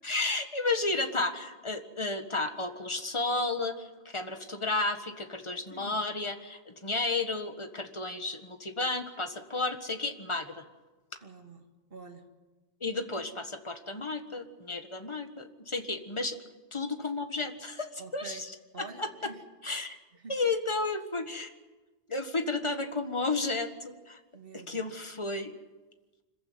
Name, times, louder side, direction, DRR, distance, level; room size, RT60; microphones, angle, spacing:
voice 1, 0.0-10.6 12.8-16.4 16.7-18.5 18.8-19.1 19.6-20.0 20.3-21.5 22.1-24.2 24.7-25.5, left 3 dB, 30° left, 7 dB, 1.7 m, -32 dB
voice 2, 5.7-6.1 11.2-12.3 18.0-18.5 18.7-19.4 20.1-20.4 24.3-24.9, right 3 dB, 60° right, 5 dB, 2.2 m, -47 dB
26.0 x 15.0 x 9.6 m, 1.2 s
omnidirectional pair, 1.1 m